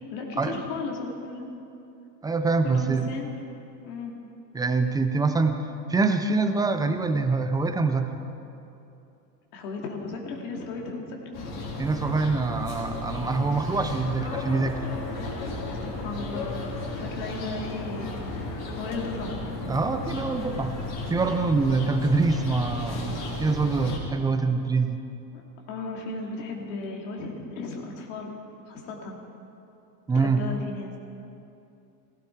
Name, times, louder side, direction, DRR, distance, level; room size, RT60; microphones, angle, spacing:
voice 1, 0.1-1.5 2.6-3.3 3.8-4.1 9.5-11.3 15.8-19.4 25.3-25.4 25.7-28.3 28.7-29.2 30.1-31.0, left 3 dB, 75° left, 0 dB, 2.7 m, -35 dB
voice 2, 2.2-3.1 4.5-5.6 5.9-8.1 11.8-14.8 19.6-20.7 21.1-25.0 30.1-30.5, right 4 dB, 10° right, 8 dB, 0.3 m, -25 dB
sound 1, 11.3-24.0, left 2 dB, 45° left, 3.5 m, -34 dB
16.5 x 16.0 x 4.6 m, 2.8 s
supercardioid pair, 120°, 49 cm